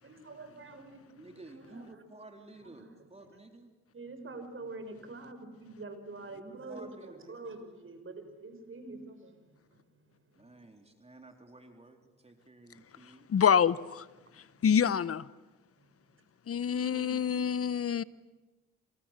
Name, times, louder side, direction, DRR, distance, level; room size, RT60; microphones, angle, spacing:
voice 1, 0.0-1.2 1.5-1.8 2.7-2.8 3.2-3.3 3.9-9.3 9.6-9.8 16.8-17.1, right 3 dB, 45° right, 6.5 m, -45 dB
voice 2, 1.1-3.7 6.3-7.4 10.4-13.3, right 2 dB, 20° right, 3.7 m, -52 dB
voice 3, 13.3-14.0 14.6-15.2 16.5-18.0, left 8 dB, 50° left, 1.1 m, -26 dB
28.0 x 28.0 x 7.6 m
supercardioid pair, 55°, 30 cm